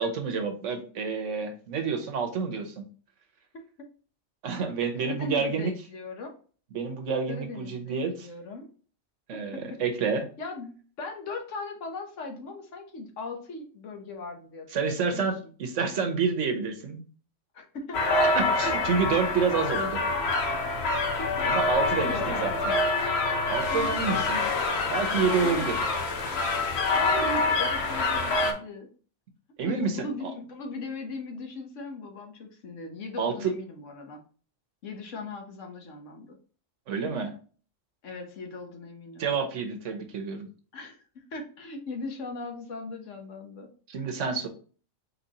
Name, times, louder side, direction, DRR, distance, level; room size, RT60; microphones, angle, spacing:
voice 1, 0.0-2.8 4.4-5.7 6.7-8.3 9.3-10.3 14.7-17.0 18.2-20.0 21.4-22.7 23.5-24.4 24.9-25.8 29.6-30.1 33.2-33.5 36.9-37.3 39.2-40.5 43.9-44.5, right 5 dB, 80° right, 6 dB, 1.2 m, -28 dB
voice 2, 3.5-3.9 4.9-6.3 7.3-8.7 9.3-9.8 10.4-15.5 17.5-18.3 21.2-21.5 21.7-22.6 23.7-24.0 25.4-25.8 26.9-28.9 29.6-34.2 34.8-36.4 38.0-39.3 40.7-43.7, left 3 dB, 80° left, 3 dB, 1.4 m, -38 dB
sound 1, 17.9-28.5, left 3 dB, 60° left, 1.1 m, -26 dB
4.1 x 3.9 x 2.9 m, 0.40 s
omnidirectional pair, 1.3 m